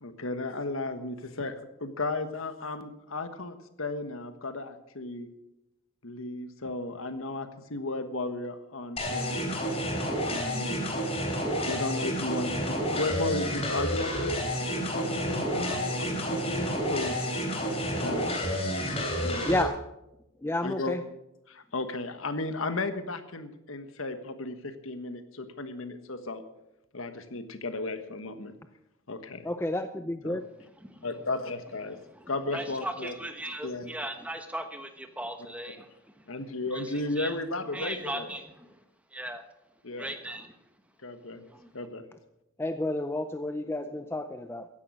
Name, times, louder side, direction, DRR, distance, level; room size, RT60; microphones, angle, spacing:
voice 1, 0.0-5.3 6.0-9.4 10.3-10.8 11.6-14.4 14.7-17.2 18.0-18.4 19.1-19.5 20.6-21.0 21.5-26.4 26.9-28.5 29.1-29.5 30.2-30.4 31.0-32.0 32.3-33.1 33.6-33.9 36.3-38.3 39.8-40.1 41.0-41.4 41.7-42.0, left 2 dB, 75° left, 1.4 m, -34 dB
sound 1, 9.0-19.6, equal, 30° left, 3.3 m, -30 dB
voice 2, 19.4-19.8 20.4-21.0 29.4-30.4 42.6-44.7, left 1 dB, 10° left, 0.5 m, -30 dB
voice 3, 30.8-31.2 31.9-36.3 36.6-38.8 39.1-39.4 40.0-40.6 41.5-41.7, right 1 dB, 5° right, 1.2 m, -39 dB
15.5 x 10.5 x 6.3 m
head